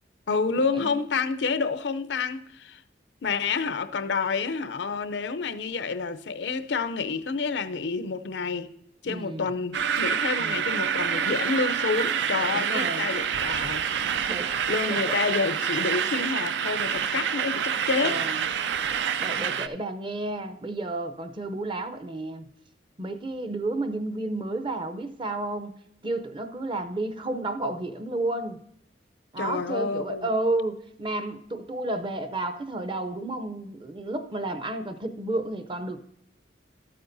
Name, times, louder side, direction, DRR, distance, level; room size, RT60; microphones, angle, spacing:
voice 1, 0.3-2.8 3.2-8.7 9.0-13.8 14.2-14.3 14.7-18.2 29.4-30.3, left 4 dB, 75° left, 0.5 m, -29 dB
voice 2, 9.0-9.5 10.4-10.7 12.5-13.1 14.3-14.5 14.9-15.1 18.0-18.4 19.2-22.5 23.0-25.7 26.0-28.6 29.3-36.1, right 2 dB, 25° right, 0.6 m, -31 dB
sound 1, 9.7-19.7, right 8 dB, 75° right, 0.4 m, -27 dB
12.5 x 8.6 x 2.6 m
head